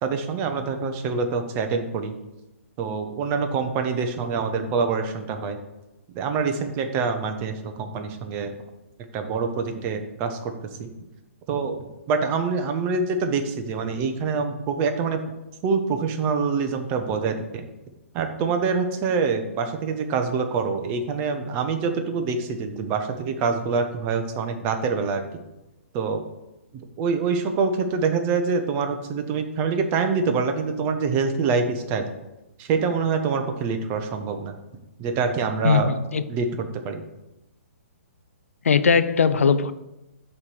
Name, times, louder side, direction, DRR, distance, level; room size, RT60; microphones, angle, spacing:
voice 1, 0.0-2.1 2.8-5.6 6.1-8.5 9.1-10.5 10.8-10.9 11.5-15.2 15.6-17.7 18.1-25.2 25.9-26.2 27.0-32.1 32.6-34.5 35.0-35.9 36.3-36.5 36.8-37.0, right 5 dB, 30° right, 0.8 m, -25 dB
voice 2, 35.6-36.3 38.6-39.7, left 5 dB, 75° left, 0.5 m, -19 dB
7.2 x 3.3 x 6.1 m
hypercardioid pair, 135°, 8 cm